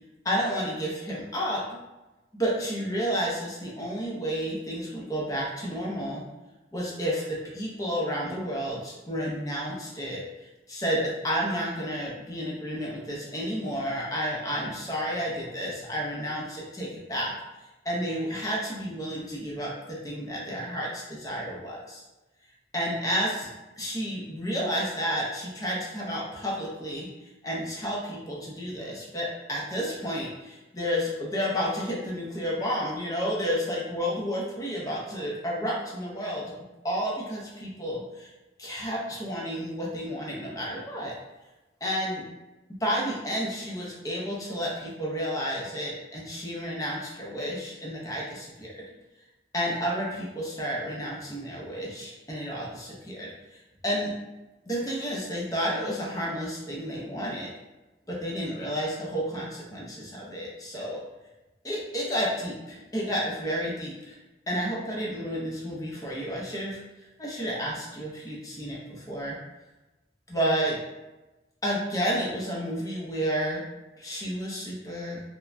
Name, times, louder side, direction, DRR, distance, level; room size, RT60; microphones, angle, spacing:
voice 1, 0.2-1.8 2.3-6.2 6.7-10.3 10.7-17.3 17.8-22.0 22.7-23.5 23.8-27.1 27.4-36.5 36.8-38.3 38.6-41.1 41.8-42.2 42.8-48.8 49.5-54.1 54.7-57.5 58.1-61.0 61.6-64.1 64.5-66.8 67.2-69.4 70.3-70.8 71.6-73.7 74.0-75.2, equal, 20° left, -4 dB, 0.6 m, -31 dB
3.2 x 2.1 x 2.4 m, 1.1 s
head